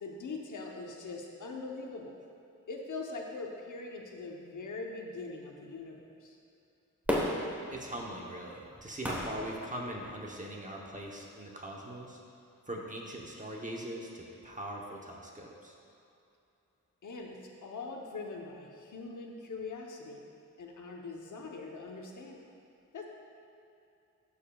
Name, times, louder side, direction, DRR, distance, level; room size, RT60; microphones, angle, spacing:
voice 1, 0.0-2.2 2.7-6.4 17.0-20.2 20.6-22.4 22.9-23.1, left 3 dB, 75° left, 0 dB, 0.9 m, -42 dB
Fireworks, 7.1-10.4 11.0-11.1, equal, 5° right, 1.1 m, -35 dB
voice 2, 7.7-12.2 12.7-15.7, right 1 dB, 25° right, -1 dB, 0.9 m, -41 dB
12.5 x 6.9 x 2.3 m, 2.7 s
wide cardioid pair, 160°, 31 cm